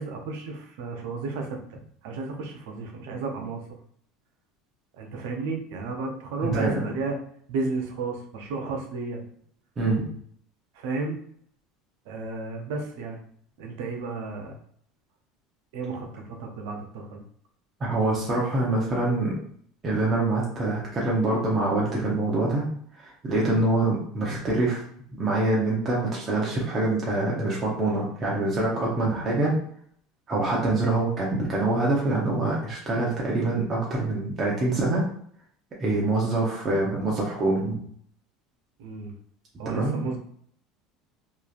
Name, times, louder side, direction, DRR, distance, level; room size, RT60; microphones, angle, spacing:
voice 1, 0.0-1.8 2.0-3.6 5.0-7.2 7.5-9.2 10.8-11.2 12.1-13.2 13.6-14.6 15.7-17.2 38.8-39.1 39.6-40.2, right 3 dB, 80° right, 3 dB, 0.6 m, -33 dB
voice 2, 6.4-6.9 9.8-10.0 17.8-19.3 19.8-22.6 22.9-24.8 25.1-29.5 30.3-35.0 35.8-37.7 39.6-40.0, right 2 dB, 30° right, -4 dB, 0.8 m, -25 dB
3.0 x 2.4 x 2.4 m, 0.62 s
supercardioid pair, 115°, 0 cm